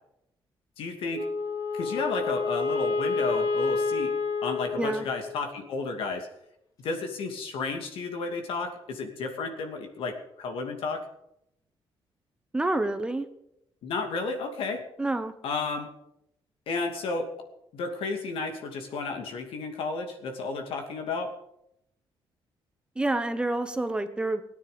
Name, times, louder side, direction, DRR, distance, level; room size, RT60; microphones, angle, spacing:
voice 1, 0.8-1.3 1.7-4.1 4.4-6.3 6.8-11.0 13.8-14.8 15.4-15.9 16.7-17.3 17.7-21.3, left 3 dB, 85° left, 5 dB, 2.6 m, -32 dB
Wind instrument woodwind instrument, 1.1-5.6, left 4 dB, 45° left, 4.0 m, -29 dB
voice 2, 12.5-13.2 15.0-15.3 23.0-24.4, right 2 dB, 10° right, 9 dB, 0.9 m, -28 dB
18.0 x 9.4 x 6.8 m, 0.79 s
cardioid pair, 165°, 9 cm